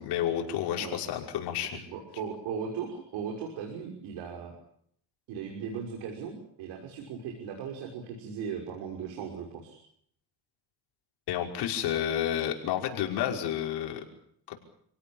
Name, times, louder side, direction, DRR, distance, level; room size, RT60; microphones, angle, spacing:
voice 1, 0.0-1.8 11.3-14.0 14.5-14.6, left 10 dB, 75° left, 2 dB, 5.6 m, -30 dB
voice 2, 1.9-4.6 5.3-9.8, right 6 dB, 85° right, 2 dB, 5.9 m, -37 dB
29.0 x 17.5 x 8.8 m, 0.68 s
cardioid pair, 110°, 40 cm